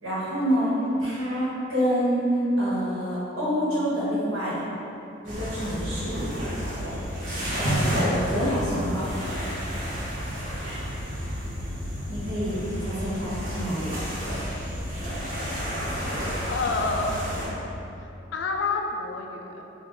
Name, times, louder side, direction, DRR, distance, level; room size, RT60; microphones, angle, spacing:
voice 1, 0.0-4.6 5.2-6.3 7.2-9.1 10.6-10.8 12.1-13.9, equal, 85° right, -9 dB, 1.2 m, -27 dB
sound 1, 5.3-17.5, equal, 40° right, 0.7 m, -30 dB
voice 2, 16.5-17.3 18.0-19.6, left 3 dB, 60° left, 2 dB, 0.3 m, -28 dB
3.3 x 2.2 x 3.7 m, 2.9 s
head